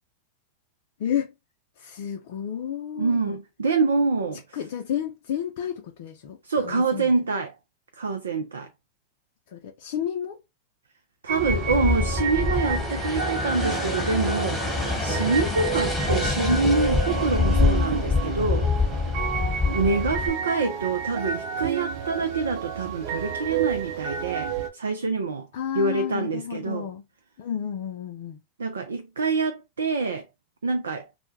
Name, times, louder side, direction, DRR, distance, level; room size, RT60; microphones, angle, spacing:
voice 1, 1.0-1.3 1.8-3.3 4.5-7.1 9.5-10.4 19.4-19.6 25.5-27.0 27.4-28.4, left 9 dB, 60° left, 0.4 m, -31 dB
voice 2, 3.0-4.4 6.4-7.5 8.0-8.7 11.2-14.7 15.0-18.7 19.7-25.5 25.7-26.9 28.6-30.3 30.6-31.1, right 4 dB, 80° right, 0.4 m, -26 dB
sound 1, 11.3-24.7, right 7 dB, 55° right, 0.7 m, -31 dB
sound 2, 11.4-20.3, left 4 dB, 5° left, 1.2 m, -26 dB
2.1 x 2.1 x 3.2 m
hypercardioid pair, 95°, 0 cm